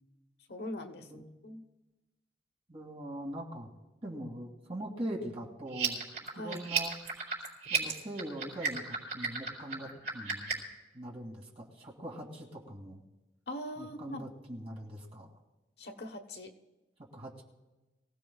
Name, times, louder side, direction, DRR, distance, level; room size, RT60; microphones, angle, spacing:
voice 1, 0.5-1.6 6.3-6.6 13.5-14.3 15.8-16.5, left 1 dB, 70° left, 4 dB, 1.1 m, -42 dB
voice 2, 1.0-1.3 2.7-3.7 4.0-6.0 6.4-7.0 7.7-10.5 10.9-13.0 13.8-15.3 17.1-17.4, right 1 dB, 35° right, -2 dB, 2.5 m, -42 dB
sound 1, 5.7-10.7, right 5 dB, 75° right, 4.4 m, -34 dB
23.5 x 16.0 x 2.4 m, 1.1 s
head